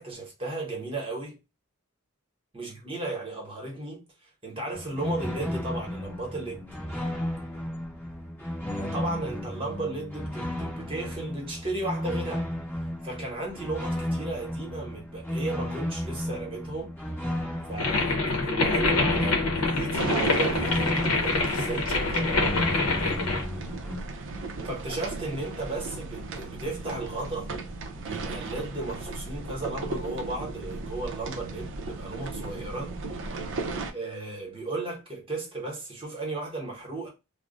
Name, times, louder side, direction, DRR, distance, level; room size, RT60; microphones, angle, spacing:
voice 1, 0.0-1.4 2.5-6.7 8.7-12.5 13.0-16.9 17.7-23.2 24.7-27.5 28.0-33.0 33.9-37.1, right 2 dB, 25° right, 1.0 m, -35 dB
sound 1, 4.7-24.0, left 1 dB, 10° left, 0.8 m, -33 dB
sound 2, 17.8-23.4, left 3 dB, 90° left, 0.7 m, -26 dB
sound 3, 19.9-33.9, right 3 dB, 60° right, 0.4 m, -35 dB
2.4 x 2.0 x 3.7 m
head